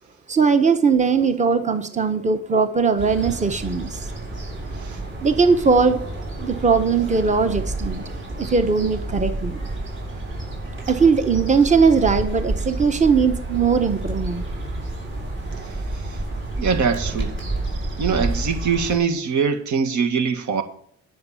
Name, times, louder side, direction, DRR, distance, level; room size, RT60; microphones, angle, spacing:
voice 1, 0.3-4.0 5.2-6.0 6.4-8.0 8.4-9.6 10.9-14.4, right 5 dB, 25° right, 1.2 m, -19 dB
sound 1, 3.0-19.0, right 2 dB, 40° right, 5.7 m, -30 dB
voice 2, 15.6-16.2 16.6-17.4 18.0-20.6, right 6 dB, 70° right, 1.7 m, -23 dB
11.0 x 6.6 x 7.3 m
cardioid pair, 90°, 30 cm